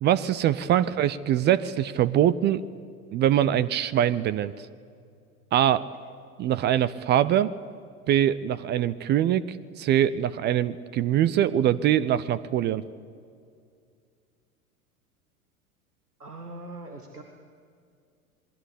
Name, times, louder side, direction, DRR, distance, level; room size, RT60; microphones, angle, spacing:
voice 1, 0.0-2.6 3.1-4.5 5.5-5.9 6.4-7.5 8.1-12.8, right 11 dB, 25° right, 17 dB, 0.6 m, -23 dB
voice 2, 16.2-17.2, right 2 dB, 90° right, 4 dB, 2.2 m, -41 dB
27.0 x 21.5 x 8.3 m, 2.2 s
figure-of-eight pair, 90°, 45 cm